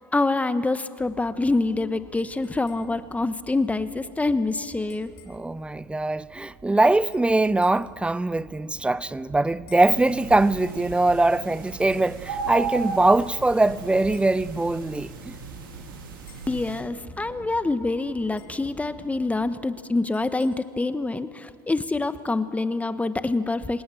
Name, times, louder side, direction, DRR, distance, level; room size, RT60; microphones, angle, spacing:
voice 1, 0.1-5.1 16.5-23.8, left 2 dB, 15° left, 1.2 m, -26 dB
sound 1, 1.0-19.6, right 3 dB, 30° right, 5.5 m, -49 dB
sound 2, 2.2-3.1 4.7-5.5 7.1-7.9 9.7-10.0 11.9-12.1 14.1-14.4 16.3-16.6 18.4-18.7 20.1-20.5, left 11 dB, 65° left, 4.8 m, -56 dB
voice 2, 5.3-15.4, right 2 dB, 10° right, 0.6 m, -22 dB
sound 3, 9.8-16.8, right 5 dB, 85° right, 3.6 m, -36 dB
27.0 x 18.0 x 7.7 m
hypercardioid pair, 80°, 11 cm